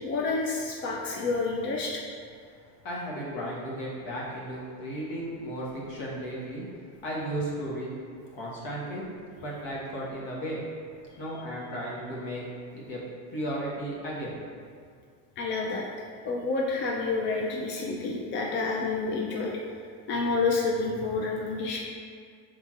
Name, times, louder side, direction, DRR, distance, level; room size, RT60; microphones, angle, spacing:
voice 1, 0.0-2.0 11.3-11.4 15.4-15.9 16.2-19.6 20.1-21.8, left 3 dB, 30° left, -2 dB, 0.3 m, -29 dB
voice 2, 2.8-6.6 7.0-7.9 8.3-9.0 9.4-10.6 11.2-12.4 12.7-13.0 13.3-14.3, right 1 dB, 55° left, -5 dB, 1.4 m, -34 dB
5.5 x 3.6 x 2.4 m, 2.2 s
supercardioid pair, 125°, 42 cm